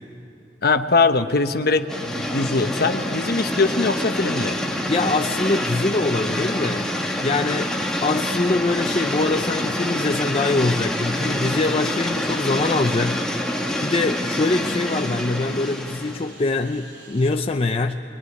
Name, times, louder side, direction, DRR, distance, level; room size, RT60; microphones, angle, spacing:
voice 1, 0.6-4.6, left 3 dB, 55° left, 1.1 m, -21 dB
sound 1, 1.9-16.4, left 1 dB, 5° left, 1.4 m, -26 dB
sound 2, 3.0-16.4, right 1 dB, 60° right, 6.8 m, -51 dB
voice 2, 4.9-6.9 7.2-13.2 13.8-18.0, left 3 dB, 35° left, 0.5 m, -23 dB
Engine, 11.5-17.3, right 3 dB, 85° right, 3.9 m, -47 dB
23.5 x 21.0 x 9.7 m
head